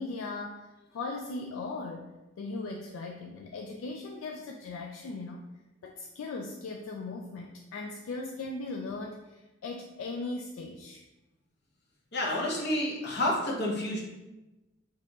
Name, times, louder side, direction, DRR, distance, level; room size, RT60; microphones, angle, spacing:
voice 1, 0.0-2.1 2.4-5.4 5.8-11.0, left 3 dB, 75° left, 2 dB, 0.3 m, -38 dB
voice 2, 12.1-14.0, left 1 dB, 55° left, -2 dB, 0.8 m, -29 dB
4.4 x 2.8 x 2.3 m, 1.0 s
head